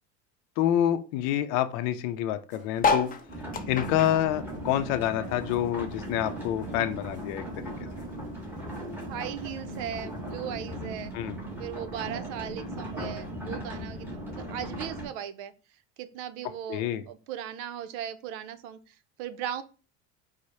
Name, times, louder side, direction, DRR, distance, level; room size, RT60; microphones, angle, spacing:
voice 1, 0.6-3.1 3.7-7.7 11.1-11.4 16.7-17.0, left 11 dB, 75° left, 10 dB, 0.6 m, -27 dB
sound 1, 2.5-10.3, right 2 dB, 20° right, 1.4 m, -53 dB
sound 2, 2.8-5.5 5.9-7.4 7.9-8.0 8.1-8.2 8.4-8.8 9.6-9.7, left 4 dB, 25° left, 0.5 m, -31 dB
sound 3, 3.3-15.1, right 1 dB, 5° right, 1.5 m, -38 dB
voice 2, 9.1-11.1 11.6-15.5 16.0-19.6, right 10 dB, 80° right, 12 dB, 0.6 m, -38 dB
4.8 x 2.1 x 4.1 m, 0.35 s
supercardioid pair, 105°, 36 cm